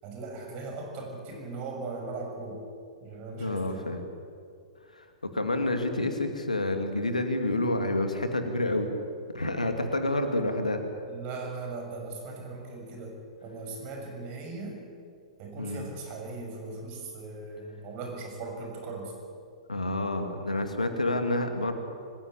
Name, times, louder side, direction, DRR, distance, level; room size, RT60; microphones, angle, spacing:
voice 1, 0.0-2.6 3.0-3.9 11.0-14.8 15.4-19.1, right 3 dB, 40° right, 2 dB, 6.8 m, -39 dB
voice 2, 3.4-4.0 4.9-5.0 5.3-8.9 9.3-10.8 15.6-15.8 19.7-21.7, left 2 dB, 85° left, 6 dB, 2.7 m, -28 dB
25.0 x 16.0 x 8.4 m, 2.3 s
figure-of-eight pair, 110°, 4 cm